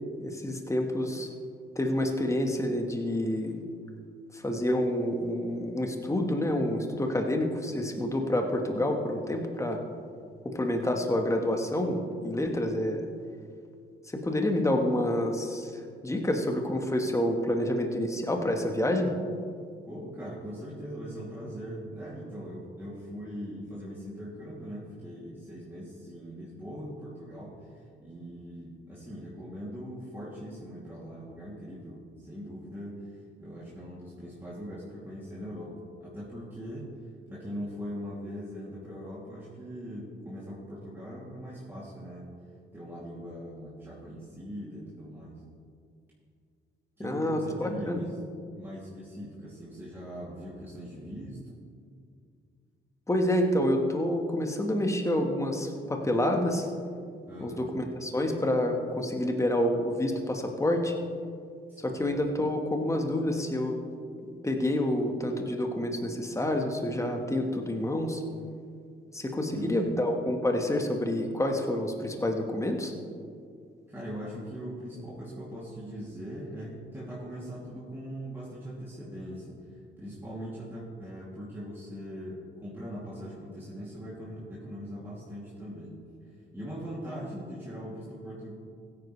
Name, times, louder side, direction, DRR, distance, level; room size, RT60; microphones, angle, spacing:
voice 1, 0.2-1.3 1.7-3.6 4.3-9.8 10.4-13.1 14.1-19.1 47.0-48.0 53.1-56.7 57.4-60.9 61.8-63.8 64.4-68.2 69.1-72.9, left 1 dB, 15° left, 3 dB, 1.5 m, -28 dB
voice 2, 19.9-27.7 28.0-33.1 33.4-37.0 37.3-42.3 42.7-45.4 47.0-48.2 48.5-51.6 57.3-57.7 61.7-62.0 69.5-69.9 73.9-79.6 80.0-86.0 86.5-88.5, equal, 10° right, -8 dB, 2.8 m, -41 dB
16.0 x 9.7 x 3.3 m, 2.2 s
cardioid pair, 70°, 21 cm